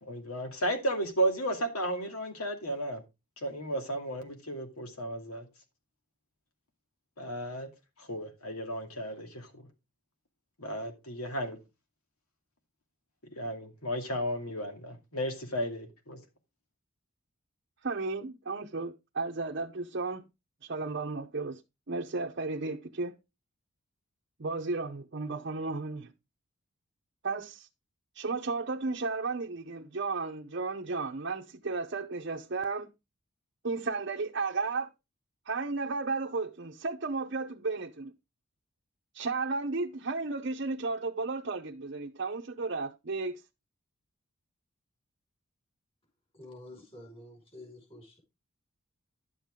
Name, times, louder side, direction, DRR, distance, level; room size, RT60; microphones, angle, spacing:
voice 1, 0.0-3.0 3.4-5.5 7.2-7.7 8.0-9.6 10.6-11.6 13.4-16.2, right 1 dB, 85° left, 2.4 m, -34 dB
voice 2, 17.8-20.2 20.6-21.6 21.9-23.1 24.4-26.1 27.2-27.7 28.1-32.9 33.6-34.9 35.5-38.1 39.1-43.4, right 3 dB, 50° right, 0.7 m, -34 dB
voice 3, 46.3-48.2, left 1 dB, 25° left, 5.3 m, -49 dB
11.0 x 7.4 x 3.7 m
head